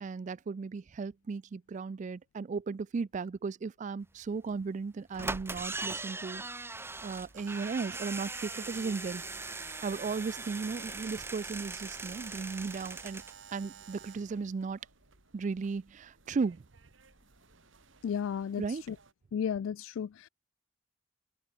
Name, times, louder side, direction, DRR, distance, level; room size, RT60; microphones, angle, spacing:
voice 1, 0.0-6.4 7.0-9.2 9.8-13.2 13.5-14.8 15.3-16.6 18.6-18.8, right 4 dB, 40° right, 0.3 m, -36 dB
sound 1, 4.5-4.6 5.1-13.4 13.7-13.8 14.0-14.1, right 3 dB, 10° right, 1.2 m, -40 dB
sound 2, 5.1-19.1, right 2 dB, 80° right, 2.3 m, -63 dB
Alarm, 7.3-14.4, right 8 dB, 65° right, 0.8 m, -51 dB
voice 2, 18.0-18.6 19.3-20.3, left 7 dB, 90° left, 0.3 m, -33 dB
head